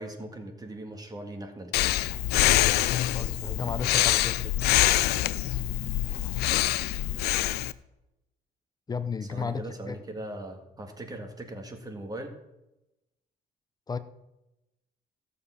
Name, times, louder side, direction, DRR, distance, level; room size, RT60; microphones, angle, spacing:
voice 1, 0.0-2.0 9.3-12.3, right 1 dB, 20° right, 5 dB, 1.8 m, -39 dB
Breathing, 1.7-7.7, left 15 dB, 75° left, 0.5 m, -25 dB
voice 2, 3.0-4.4 8.9-10.0 13.9-14.0, left 5 dB, 25° left, 13 dB, 0.7 m, -33 dB
16.0 x 7.0 x 5.7 m, 0.93 s
cardioid pair, 110°, 17 cm